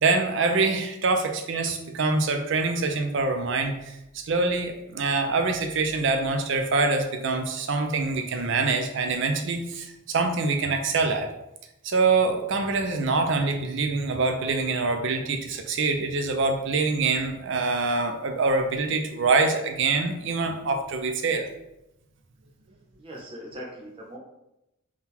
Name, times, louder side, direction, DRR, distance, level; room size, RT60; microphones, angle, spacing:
voice 1, 0.0-11.3 11.8-21.5, right 3 dB, 60° right, 5 dB, 0.5 m, -25 dB
voice 2, 23.0-24.2, equal, 25° right, -2 dB, 0.8 m, -40 dB
3.7 x 2.3 x 4.3 m, 0.88 s
head